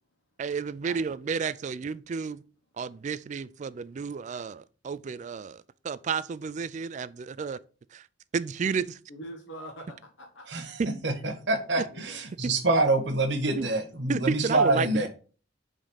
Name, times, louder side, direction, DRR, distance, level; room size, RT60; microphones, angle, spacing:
voice 1, 0.4-2.4 2.8-7.6 7.9-8.1 8.3-9.0 10.8-10.9 13.6-13.7 14.1-15.1, right 5 dB, 40° right, 0.3 m, -31 dB
voice 2, 9.1-10.6 11.9-12.2, right 1 dB, 85° left, 1.1 m, -44 dB
voice 3, 10.5-15.1, right 2 dB, 65° right, 1.3 m, -26 dB
5.1 x 3.6 x 5.6 m
head